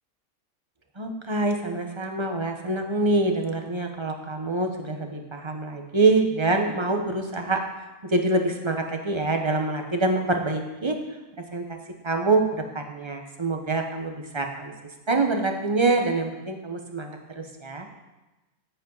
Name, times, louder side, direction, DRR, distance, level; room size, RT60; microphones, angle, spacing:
voice 1, 1.0-7.6 8.0-11.0 11.5-11.8 12.0-17.9, right 2 dB, 20° right, 4 dB, 1.0 m, -25 dB
14.5 x 8.4 x 4.0 m, 1.1 s
omnidirectional pair, 1.6 m